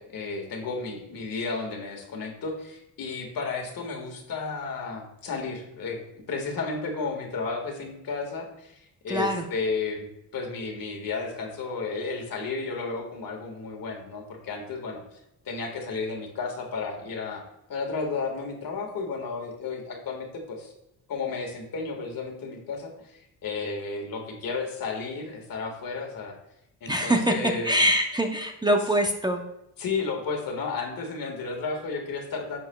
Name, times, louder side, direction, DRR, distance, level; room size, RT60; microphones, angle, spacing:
voice 1, 0.0-6.0 6.3-15.0 15.5-17.4 17.7-20.7 21.1-26.3 26.8-27.7 29.8-32.6, left 4 dB, 60° left, 1 dB, 1.8 m, -33 dB
voice 2, 9.1-9.5 26.9-27.3 27.6-29.4, equal, 10° right, 3 dB, 0.7 m, -24 dB
11.5 x 7.1 x 2.3 m, 0.84 s
cardioid pair, 100°, 39 cm